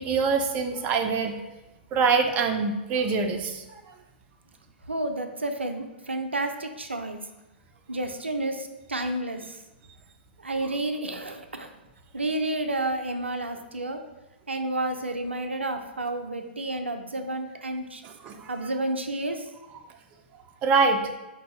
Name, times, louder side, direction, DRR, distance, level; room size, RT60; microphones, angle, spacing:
voice 1, 0.0-1.4 1.9-3.8 18.0-18.5 20.6-21.0, right 4 dB, 25° right, 6 dB, 0.4 m, -24 dB
voice 2, 4.9-7.2 7.9-9.6 10.4-11.7 12.1-14.0 14.5-18.0 18.5-19.5, right 2 dB, 85° right, 6 dB, 0.5 m, -30 dB
4.5 x 2.7 x 4.3 m, 1.0 s
figure-of-eight pair, 110°, 6 cm